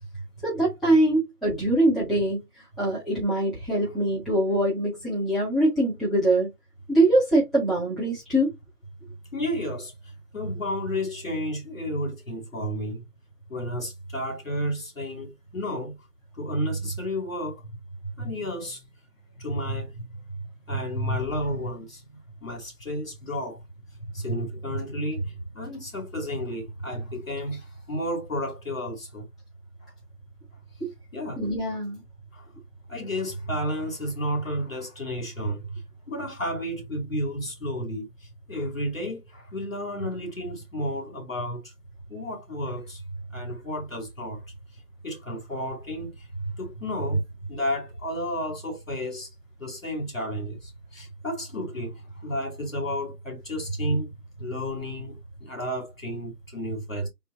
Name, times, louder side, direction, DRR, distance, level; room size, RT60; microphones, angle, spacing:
voice 1, 0.4-2.4 2.8-6.5 6.9-8.5 30.8-30.9 31.4-32.0, right 1 dB, ahead, 0.8 m, -23 dB
voice 2, 9.3-13.0 13.5-15.9 16.4-17.8 18.2-18.8 19.4-20.1 20.7-22.0 22.4-23.6 24.1-29.3 31.1-31.4 32.3-32.5 32.9-41.7 42.1-43.0 43.3-44.4 45.0-49.3 49.6-54.1 54.4-57.1, equal, 55° left, 2.6 m, -31 dB
3.8 x 2.4 x 3.8 m
figure-of-eight pair, 180°, 48 cm